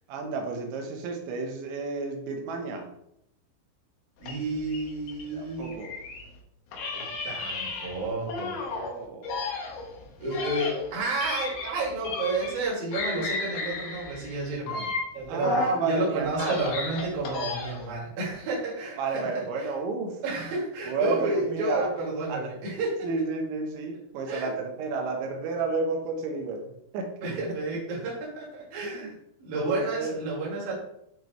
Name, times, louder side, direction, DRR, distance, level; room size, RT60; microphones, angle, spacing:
voice 1, 0.1-2.9 5.3-5.9 8.6-9.5 10.0-10.1 15.3-16.6 19.0-20.2 20.9-21.9 22.3-22.5 23.0-27.3 28.9-29.2 29.6-30.1, right 3 dB, 75° right, 2 dB, 3.1 m, -31 dB
sound 1, 4.2-6.3 6.7-8.9 9.2-12.7 12.9-15.8 16.2-17.9, left 3 dB, 75° left, 2.4 m, -34 dB
voice 2, 4.2-5.8 6.9-8.5 10.2-15.5 15.8-19.7 20.2-22.9 24.3-24.5 27.2-30.7, right 2 dB, 55° right, -5 dB, 3.2 m, -31 dB
9.0 x 3.4 x 3.1 m, 0.77 s
omnidirectional pair, 5.8 m